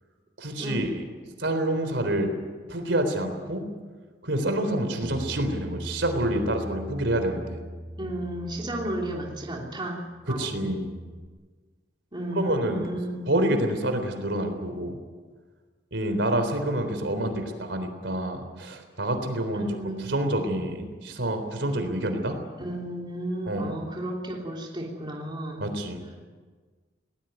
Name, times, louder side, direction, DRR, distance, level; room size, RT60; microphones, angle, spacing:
voice 1, 0.4-1.0 1.4-2.3 2.7-3.7 4.2-7.6 10.3-10.9 12.4-12.9 13.3-15.0 15.9-19.7 20.0-22.4 23.5-23.7 25.6-26.0, right 1 dB, 75° right, 7 dB, 3.7 m, -27 dB
Bass guitar, 5.0-9.8 10.1-11.3, equal, 5° right, 1.1 m, -40 dB
voice 2, 8.0-10.7 12.1-13.4 17.1-17.4 19.5-20.2 22.6-25.7, right 1 dB, 25° right, -1 dB, 3.1 m, -33 dB
20.0 x 19.0 x 9.4 m, 1.4 s
head